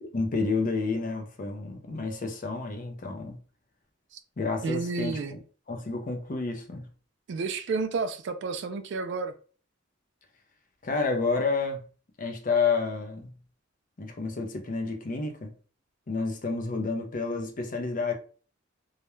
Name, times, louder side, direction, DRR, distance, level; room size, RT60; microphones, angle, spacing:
voice 1, 0.0-3.4 4.4-5.4 5.7-6.9 10.8-11.8 12.2-13.3 14.0-15.5 16.1-18.1, left 4 dB, 40° left, 0.5 m, -30 dB
voice 2, 4.6-5.3 7.3-9.3, right 4 dB, 60° right, 0.3 m, -31 dB
2.3 x 2.1 x 3.0 m
head